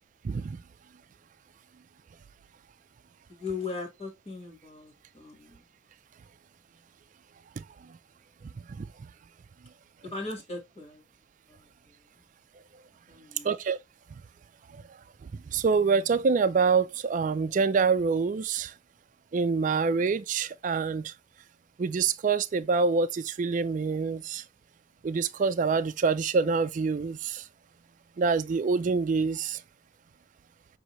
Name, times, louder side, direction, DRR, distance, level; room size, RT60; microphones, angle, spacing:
voice 1, 0.2-0.6 7.6-7.7 8.7-8.8 13.4-13.8 14.7-14.8 15.5-18.7 19.3-21.1 21.8-24.4 25.0-27.4 28.2-29.6, right 5 dB, 40° right, 0.3 m, -26 dB
voice 2, 3.3-5.6 10.1-11.0 11.5-11.7 13.1-13.5, left 3 dB, 30° left, 1.4 m, -38 dB
6.3 x 2.7 x 2.9 m
head